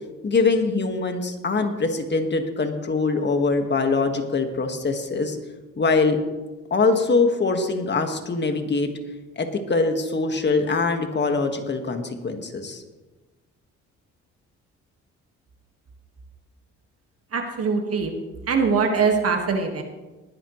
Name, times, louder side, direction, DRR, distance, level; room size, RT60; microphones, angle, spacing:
voice 1, 0.2-5.4 5.8-6.2 6.7-8.9 9.4-12.8, left 3 dB, 35° left, 6 dB, 1.7 m, -23 dB
voice 2, 17.3-18.1 18.5-19.8, right 5 dB, 50° right, 3 dB, 1.8 m, -22 dB
19.5 x 10.5 x 3.2 m, 1.2 s
cardioid pair, 90°, 30 cm